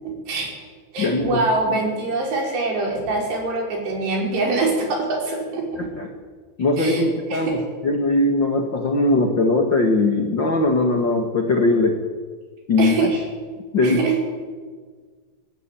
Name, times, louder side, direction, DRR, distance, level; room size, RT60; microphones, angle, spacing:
voice 1, 0.0-0.5 0.9-5.9 6.8-7.6 12.8-13.2 13.8-14.1, right 3 dB, 60° right, 0 dB, 7.2 m, -24 dB
voice 2, 1.0-1.4 5.8-6.1 6.6-7.6 7.8-12.0 12.7-13.1 13.7-14.0, left 2 dB, 55° left, 3 dB, 1.2 m, -20 dB
23.0 x 16.5 x 9.2 m, 1.5 s
omnidirectional pair, 5.5 m